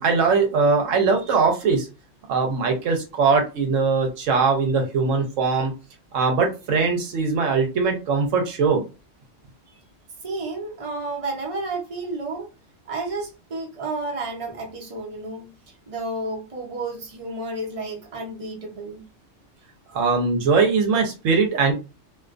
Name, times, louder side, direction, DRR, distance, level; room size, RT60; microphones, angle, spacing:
voice 1, 0.0-1.9 2.3-5.7 6.1-8.8 19.9-21.7, right 4 dB, 85° right, 3 dB, 1.0 m, -21 dB
voice 2, 10.2-12.5 12.8-19.0, right 2 dB, 30° right, -1 dB, 0.8 m, -31 dB
2.4 x 2.3 x 2.4 m, 0.30 s
omnidirectional pair, 1.3 m